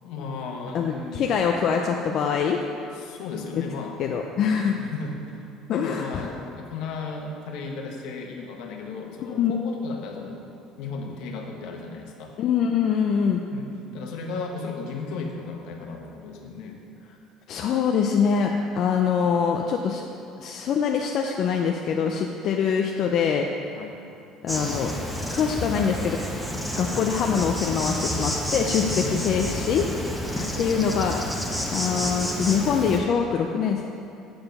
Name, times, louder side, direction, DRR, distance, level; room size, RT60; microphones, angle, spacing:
voice 1, 0.0-1.5 2.9-4.0 4.6-5.4 5.7-10.4 10.8-12.3 13.5-16.8 23.7-23.9 28.9-29.4 30.3-30.6, left 4 dB, 75° left, 1 dB, 1.2 m, -35 dB
voice 2, 0.7-2.6 3.5-3.6 4.0-4.8 5.7-6.3 9.4-9.5 12.4-13.4 17.5-20.0 20.4-23.5 24.4-24.9 25.3-26.2 26.8-30.2 30.6-31.2 31.7-33.8, left 7 dB, 50° left, 1 dB, 0.5 m, -24 dB
Insect, 24.5-33.0, equal, ahead, 1.1 m, -30 dB
7.8 x 6.8 x 5.4 m, 2.6 s
cardioid pair, 130°, 0 cm